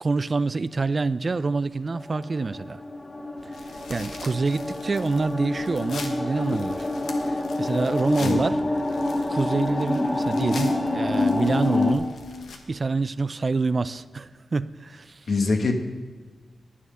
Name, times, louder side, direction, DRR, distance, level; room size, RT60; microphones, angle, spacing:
voice 1, 0.0-2.8 3.9-6.9 7.3-8.6 9.3-12.1 12.7-15.2, right 3 dB, 45° right, 0.4 m, -26 dB
sound 1, 1.9-11.9, left 2 dB, 25° left, 1.7 m, -27 dB
sound 2, 3.4-12.6, left 3 dB, 85° left, 1.2 m, -43 dB
voice 2, 8.2-8.5 15.3-15.7, left 3 dB, 60° left, 1.4 m, -24 dB
11.0 x 9.2 x 5.6 m
cardioid pair, 55°, 0 cm